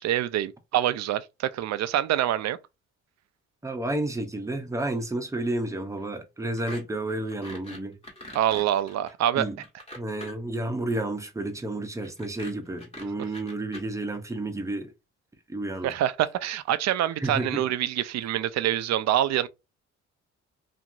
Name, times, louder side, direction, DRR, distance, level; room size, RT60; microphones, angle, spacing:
voice 1, 0.0-2.6 8.3-9.5 15.8-19.5, right 12 dB, 60° right, 0.4 m, -26 dB
voice 2, 3.6-8.0 9.4-9.6 10.0-14.9 15.5-15.9 17.2-17.6, right 2 dB, 10° right, 0.6 m, -31 dB
sound 1, 6.6-6.8 7.1-10.5 12.0-13.8, left 1 dB, 20° left, 1.3 m, -43 dB
2.9 x 2.5 x 2.5 m
cardioid pair, 90°, 30 cm